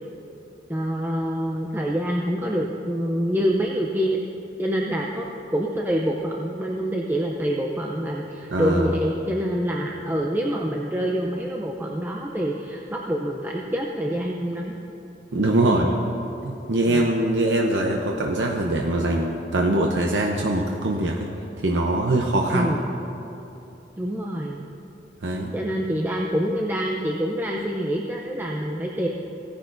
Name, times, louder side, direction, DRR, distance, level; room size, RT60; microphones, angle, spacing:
voice 1, 0.7-4.2 4.6-5.3 5.5-14.8 15.3-15.9 16.9-17.0 22.5-22.9 24.0-24.7 25.5-29.1, equal, 10° right, -1 dB, 0.5 m, -26 dB
voice 2, 8.5-8.9 15.3-15.9 16.4-21.3 21.6-22.7 25.2-25.5, right 1 dB, 85° right, 0 dB, 0.7 m, -22 dB
17.0 x 10.0 x 2.6 m, 2.9 s
head